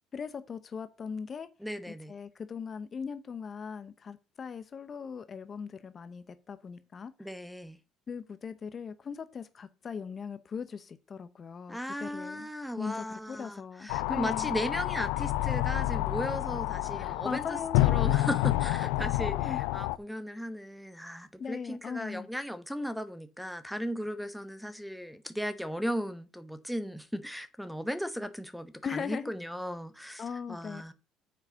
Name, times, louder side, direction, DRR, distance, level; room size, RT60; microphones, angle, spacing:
voice 1, 0.1-1.5 1.9-7.3 8.1-12.5 12.8-14.5 17.0-18.0 19.2-19.6 21.4-22.3 28.8-29.3 30.2-30.9, left 6 dB, 35° left, 0.7 m, -39 dB
voice 2, 1.6-2.1 7.2-7.8 11.7-30.9, equal, ahead, 1.0 m, -37 dB
sound 1, 13.9-20.0, left 16 dB, 90° left, 0.4 m, -29 dB
7.5 x 4.7 x 6.8 m
supercardioid pair, 95°, 0 cm